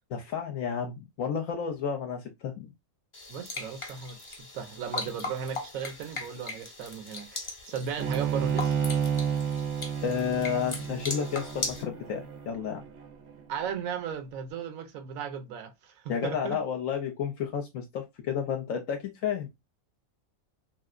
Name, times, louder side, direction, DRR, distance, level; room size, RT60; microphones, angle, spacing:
voice 1, 0.1-2.7 10.0-12.8 16.1-19.5, left 7 dB, 70° left, 0.9 m, -31 dB
sound 1, 3.1-11.8, left 3 dB, 30° left, 0.5 m, -39 dB
voice 2, 3.3-8.8 13.5-16.6, right 7 dB, 75° right, 1.1 m, -36 dB
Bowed string instrument, 8.0-13.3, right 7 dB, 55° right, 0.8 m, -31 dB
3.2 x 2.7 x 2.4 m
omnidirectional pair, 1.5 m